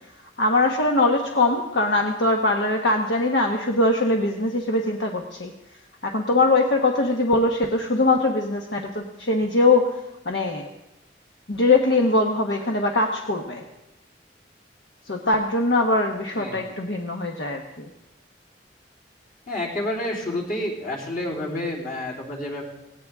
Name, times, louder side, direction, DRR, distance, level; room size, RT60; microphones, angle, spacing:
voice 1, 0.4-5.5 6.0-10.0 10.2-10.7 11.5-13.6 15.1-17.9, left 2 dB, 75° left, 2 dB, 1.2 m, -22 dB
voice 2, 19.5-22.6, left 1 dB, 50° left, -3 dB, 3.6 m, -29 dB
17.5 x 17.5 x 3.6 m, 0.95 s
head